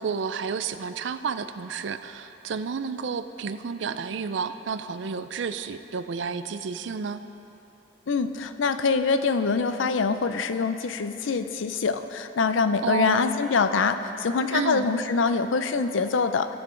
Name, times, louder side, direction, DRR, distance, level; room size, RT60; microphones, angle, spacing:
voice 1, 0.0-7.2 12.8-13.4 14.5-14.9, right 5 dB, 70° right, 11 dB, 0.4 m, -31 dB
voice 2, 8.1-16.6, left 4 dB, 85° left, 10 dB, 0.5 m, -24 dB
16.5 x 6.9 x 3.8 m, 3.0 s
head